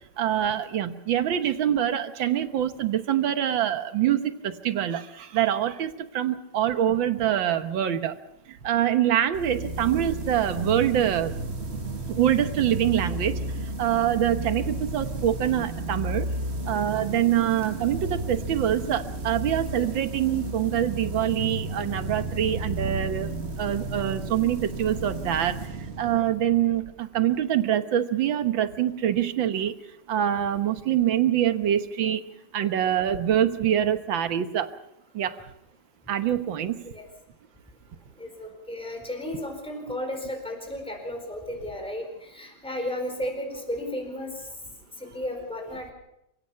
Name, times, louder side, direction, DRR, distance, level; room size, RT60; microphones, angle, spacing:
voice 1, 0.2-8.1 8.5-11.3 12.2-13.4 13.8-16.3 16.7-25.7 26.0-29.7 30.1-32.2 32.5-34.7 35.1-35.4 36.1-36.9, right 10 dB, 85° right, 10 dB, 1.9 m, -25 dB
sound 1, 9.3-26.8, right 2 dB, 35° right, 1.7 m, -33 dB
voice 2, 38.2-44.4 45.0-45.9, left 1 dB, 5° left, 3 dB, 4.4 m, -34 dB
29.5 x 17.0 x 5.7 m, 0.83 s
omnidirectional pair, 2.0 m